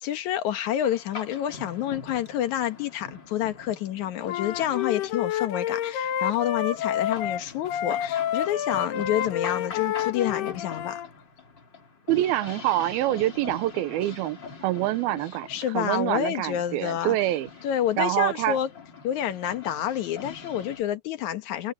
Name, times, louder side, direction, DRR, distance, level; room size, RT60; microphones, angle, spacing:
voice 1, 0.0-11.0 15.5-17.2 17.6-18.7 19.0-21.7, left 11 dB, 65° left, 2.2 m, -28 dB
sound 1, 0.8-20.8, left 5 dB, 30° left, 2.8 m, -44 dB
Wind instrument woodwind instrument, 4.3-11.1, left 10 dB, 80° left, 3.5 m, -29 dB
voice 2, 12.1-15.5 15.7-17.5 18.0-18.6, right 15 dB, 80° right, 2.6 m, -26 dB
omnidirectional pair, 4.5 m